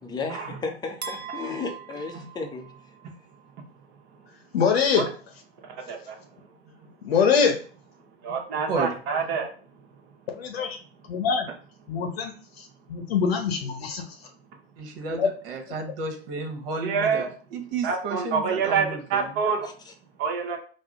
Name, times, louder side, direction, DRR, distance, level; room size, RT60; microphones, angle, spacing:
voice 1, 0.0-2.8 19.6-19.9, left 4 dB, 15° left, 4 dB, 0.6 m, -34 dB
sound 1, 1.0-3.1, right 7 dB, 85° right, 0.6 m, -40 dB
voice 2, 4.5-5.1 7.0-7.6 10.3-10.8 11.1-11.5 11.9-14.0 15.1-15.3, left 6 dB, 70° left, 3 dB, 0.8 m, -24 dB
voice 3, 8.2-9.5 16.8-17.3 17.8-19.7 20.2-20.6, right 5 dB, 35° right, 3 dB, 0.8 m, -26 dB
voice 4, 14.8-19.4, right 4 dB, 60° right, 4 dB, 1.0 m, -32 dB
3.5 x 2.0 x 3.5 m, 0.41 s
figure-of-eight pair, 95°, 32 cm